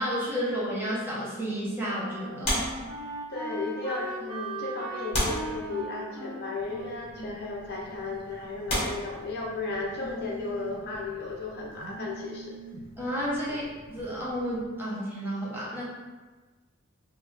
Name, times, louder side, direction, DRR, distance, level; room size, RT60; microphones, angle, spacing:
voice 1, 0.0-2.7 7.2-7.3 13.0-13.6 13.9-15.8, equal, 10° right, -8 dB, 0.9 m, -31 dB
Wind instrument woodwind instrument, 1.4-8.2, right 2 dB, 85° right, 1.1 m, -39 dB
sound 1, 2.4-3.5 4.3-4.4 5.1-6.2 7.2-7.4 8.0-8.1 8.7-9.9 11.8-13.6 13.8-14.0, equal, 30° left, 1.5 m, -32 dB
voice 2, 3.3-12.6 13.5-13.6, left 3 dB, 50° left, -2 dB, 0.5 m, -35 dB
Telephone, 6.6-14.6, right 1 dB, 45° right, 0.5 m, -47 dB
3.5 x 2.7 x 3.2 m, 1.3 s
head